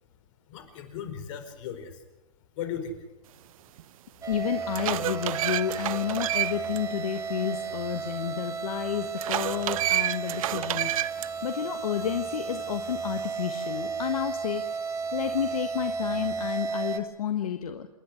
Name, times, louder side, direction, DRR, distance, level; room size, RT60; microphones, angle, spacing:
voice 1, 0.5-2.0 2.6-3.0, left 7 dB, 60° left, 7 dB, 4.8 m, -36 dB
sound 1, 3.8-3.9 4.4-6.8 7.2-7.3 9.2-11.3, right 13 dB, 70° right, 0.8 m, -29 dB
sound 2, 4.2-17.0, right 5 dB, 20° right, 2.1 m, -34 dB
voice 2, 4.3-17.9, left 9 dB, 80° left, 7 dB, 1.5 m, -31 dB
28.5 x 11.0 x 10.0 m, 1.0 s
hypercardioid pair, 120°, 18 cm